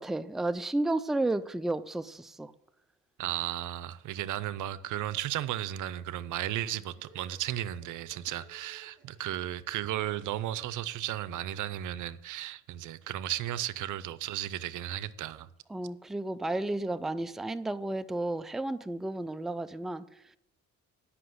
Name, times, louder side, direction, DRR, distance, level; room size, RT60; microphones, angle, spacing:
voice 1, 0.0-2.5 15.7-20.4, right 2 dB, ahead, 0.4 m, -32 dB
voice 2, 3.2-15.5, right 13 dB, 80° right, 0.6 m, -34 dB
sound 1, 6.9-11.6, right 3 dB, 55° right, 2.6 m, -59 dB
10.0 x 5.9 x 7.8 m
cardioid pair, 90°, 30 cm